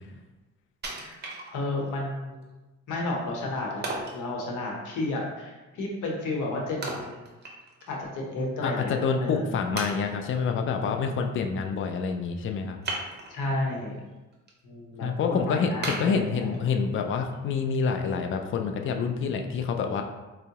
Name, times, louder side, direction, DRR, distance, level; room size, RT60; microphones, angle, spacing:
Wood, 0.8-1.9 2.4-2.5 3.8-4.2 6.8-7.9 8.3-8.4 9.1-9.2 9.8-10.4 12.8-13.6 14.1-14.5 14.9-15.0 15.8-16.8 17.3-17.4, right 2 dB, 35° right, 0.7 m, -36 dB
voice 1, 1.5-2.4 2.9-7.2 7.9-9.6 13.3-14.0 14.6-16.5, left 2 dB, 80° left, -1 dB, 0.8 m, -32 dB
voice 2, 8.6-12.8 15.0-20.0, left 5 dB, 45° left, 5 dB, 0.4 m, -27 dB
4.4 x 2.0 x 2.8 m, 1.1 s
cardioid pair, 90°, 30 cm